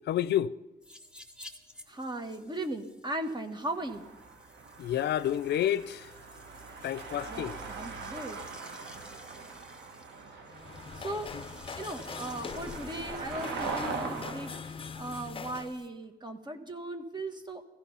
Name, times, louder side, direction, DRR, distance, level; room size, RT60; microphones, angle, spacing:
voice 1, 0.1-0.5 4.8-6.1 6.8-7.6, left 11 dB, 75° left, 0.5 m, -29 dB
sound 1, 0.8-15.9, left 1 dB, 5° right, 1.5 m, -54 dB
voice 2, 1.9-4.0 7.3-8.4 10.9-11.3 11.8-17.6, right 1 dB, 25° right, 1.8 m, -38 dB
sound 2, 3.7-14.6, right 4 dB, 90° right, 1.9 m, -41 dB
sound 3, 10.5-15.8, left 6 dB, 30° left, 0.7 m, -42 dB
16.0 x 15.5 x 5.7 m
cardioid pair, 100°, 18 cm